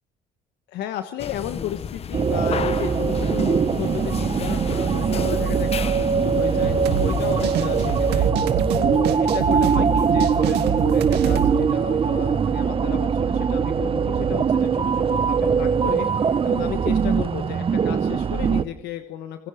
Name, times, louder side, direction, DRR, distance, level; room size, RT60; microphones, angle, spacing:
voice 1, 0.7-19.5, left 11 dB, 85° left, 8 dB, 1.4 m, -34 dB
sound 1, 1.2-8.3, left 7 dB, 35° left, 0.9 m, -32 dB
sound 2, 2.1-18.6, right 6 dB, 35° right, 0.9 m, -22 dB
sound 3, 6.6-11.5, right 7 dB, 80° right, 2.3 m, -26 dB
27.5 x 20.0 x 5.1 m, 0.93 s
cardioid pair, 110°, 17 cm